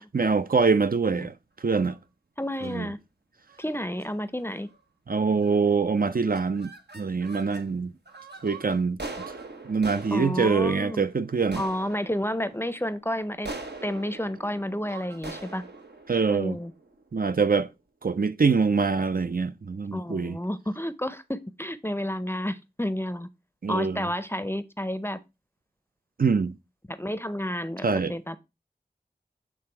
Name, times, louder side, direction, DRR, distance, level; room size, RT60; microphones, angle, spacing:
voice 1, 0.1-1.3 1.6-2.0 2.6-2.9 5.1-7.9 8.4-9.0 9.7-11.6 16.1-16.6 17.1-17.7 18.0-20.4 23.6-24.1 26.2-26.6 27.8-28.1, right 5 dB, 60° right, 0.4 m, -24 dB
sound 1, 1.6-2.0 2.5-2.8 3.5-3.7 4.0-4.1 4.4-4.8 5.4-5.7 6.0-7.7 8.1-17.2, right 2 dB, 80° right, 0.9 m, -43 dB
voice 2, 2.4-3.0 3.6-4.7 10.1-11.1 11.6-13.5 13.8-15.6 16.3-16.7 19.9-23.3 23.7-25.2 26.9-28.4, left 1 dB, 15° left, 0.5 m, -30 dB
7.8 x 3.4 x 4.4 m
wide cardioid pair, 45°, 17 cm